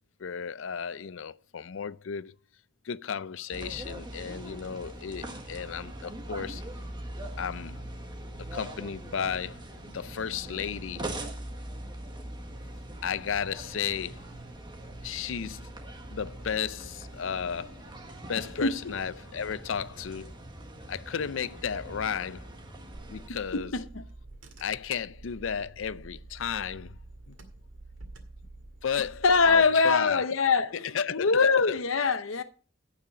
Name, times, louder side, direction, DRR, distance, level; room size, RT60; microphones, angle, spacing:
voice 1, 0.2-2.3 2.8-6.6 7.4-7.8 8.5-11.1 13.0-14.2 15.0-15.7 16.1-17.9 18.3-20.4 20.9-22.5 23.1-23.7 24.6-27.0 27.3-27.4 28.8-30.2 30.9-31.3 31.7-31.8, left 7 dB, 70° left, 0.5 m, -34 dB
sound 1, 3.5-23.3, right 1 dB, 25° right, 1.5 m, -42 dB
voice 2, 18.6-18.9 23.3-24.0 29.2-32.4, left 4 dB, 90° left, 0.8 m, -24 dB
Car / Engine, 22.9-29.6, right 2 dB, 75° right, 2.0 m, -48 dB
16.0 x 5.8 x 4.9 m
head